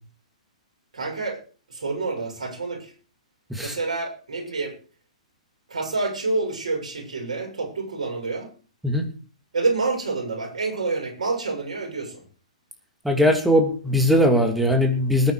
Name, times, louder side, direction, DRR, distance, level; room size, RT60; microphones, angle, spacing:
voice 1, 0.9-1.4 1.7-2.9 3.6-4.7 5.7-8.5 9.5-12.2, right 3 dB, 65° right, 1 dB, 7.4 m, -28 dB
voice 2, 13.0-15.3, equal, 5° right, 5 dB, 3.0 m, -20 dB
20.5 x 9.3 x 5.0 m, 0.38 s
figure-of-eight pair, 115°, 4 cm